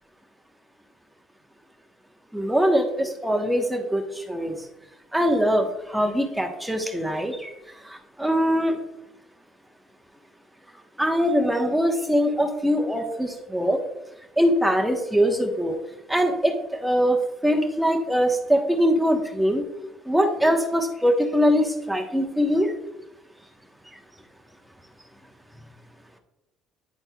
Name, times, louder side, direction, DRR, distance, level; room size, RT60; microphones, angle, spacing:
voice 1, 2.3-4.0 4.3-4.5 5.1-7.5 8.2-8.8 11.0-13.8 14.4-15.8 16.1-17.2 17.4-19.6 20.1-22.7, equal, 5° right, 2 dB, 1.1 m, -22 dB
10.5 x 4.1 x 2.3 m, 0.92 s
supercardioid pair, 85°, 0 cm